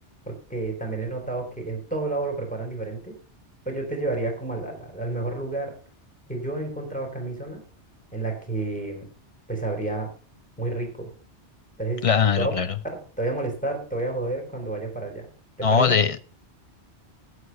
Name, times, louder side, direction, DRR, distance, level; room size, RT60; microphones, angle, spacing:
voice 1, 0.3-3.1 3.7-5.7 6.3-7.6 8.1-9.1 9.5-10.1 10.6-11.1 11.8-12.1 12.4-12.5 12.9-15.3 15.6-16.0, right 2 dB, 5° left, 2 dB, 4.1 m, -30 dB
voice 2, 12.0-12.7 15.6-16.2, left 6 dB, 35° left, 12 dB, 0.7 m, -21 dB
11.5 x 8.3 x 5.4 m, 0.39 s
omnidirectional pair, 1.2 m